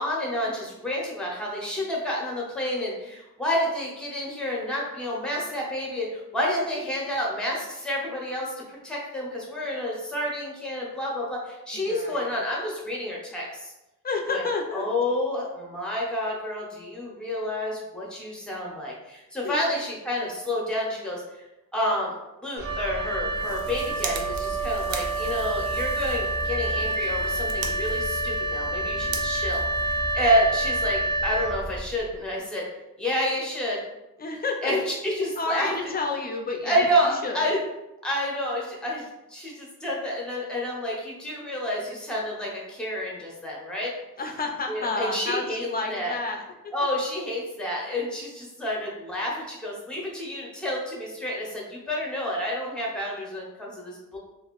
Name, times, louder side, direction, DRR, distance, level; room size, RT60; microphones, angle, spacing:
voice 1, 0.0-13.7 14.3-14.4 14.7-21.4 21.7-22.1 22.4-32.7 33.0-33.8 34.6-35.7 36.6-37.6 38.0-43.9 44.7-46.2 46.7-54.2, equal, 5° left, -3 dB, 0.7 m, -29 dB
voice 2, 11.7-12.3 14.0-14.9 19.4-19.7 34.2-34.7 35.4-37.5 44.2-46.4, left 3 dB, 30° left, 2 dB, 0.4 m, -30 dB
Wind instrument woodwind instrument, 22.6-32.0, right 2 dB, 45° right, 0.9 m, -28 dB
sound 1, 23.2-30.5, right 6 dB, 75° right, 0.5 m, -40 dB
2.8 x 2.4 x 3.0 m, 0.96 s
wide cardioid pair, 150°, 35 cm